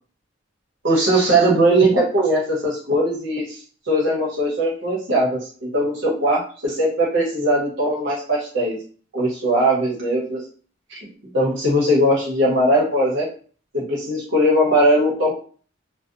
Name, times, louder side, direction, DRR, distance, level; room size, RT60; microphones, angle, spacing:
voice 1, 0.8-3.6 3.9-8.8 9.1-10.4 10.9-11.1 11.3-13.3 13.7-15.3, right 1 dB, 70° right, -4 dB, 1.0 m, -19 dB
2.7 x 2.2 x 2.5 m, 0.42 s
head